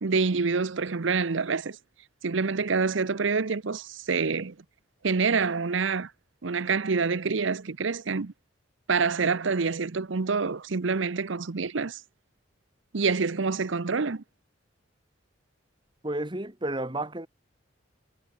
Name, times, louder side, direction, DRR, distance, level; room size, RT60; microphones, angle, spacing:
voice 1, 0.0-1.8 2.2-4.6 5.0-6.1 6.4-8.3 8.9-12.0 12.9-14.2, right 4 dB, 70° right, 0.7 m, -27 dB
voice 2, 16.0-17.3, right 1 dB, 25° right, 1.9 m, -31 dB
head